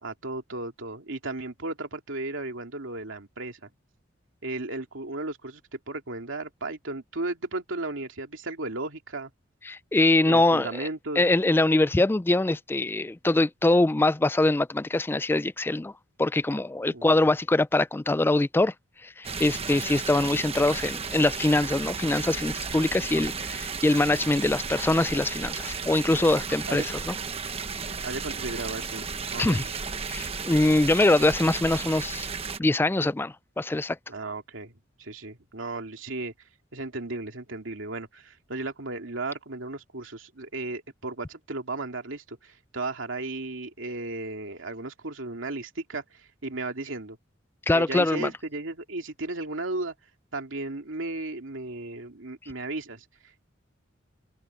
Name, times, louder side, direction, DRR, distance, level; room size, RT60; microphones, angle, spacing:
voice 1, 0.0-3.7 4.4-9.3 10.2-11.2 16.9-17.2 26.7-26.9 27.8-29.7 34.1-34.7 35.0-36.3 36.7-47.2 47.7-49.9 50.3-53.5, right 2 dB, 80° right, 2.6 m, -35 dB
voice 2, 9.7-10.9 11.2-15.9 16.2-18.7 19.0-27.2 29.4-29.7 30.1-32.3 32.6-34.0 47.7-48.3, left 2 dB, 10° left, 0.3 m, -23 dB
sound 1, 19.2-32.6, right 5 dB, 30° right, 1.1 m, -34 dB
open air
head